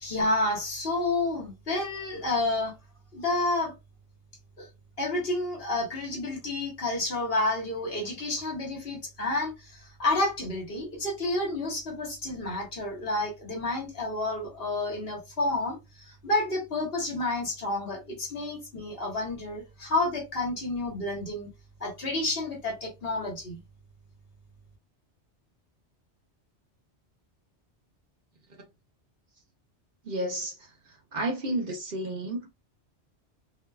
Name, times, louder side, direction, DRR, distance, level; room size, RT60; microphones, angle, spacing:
voice 1, 0.0-2.8 3.1-3.7 4.6-4.7 5.0-21.5 21.8-23.6, left 2 dB, 60° left, 1.2 m, -30 dB
voice 2, 30.0-32.5, right 1 dB, 55° right, 0.8 m, -32 dB
2.6 x 2.2 x 2.2 m
omnidirectional pair, 1.2 m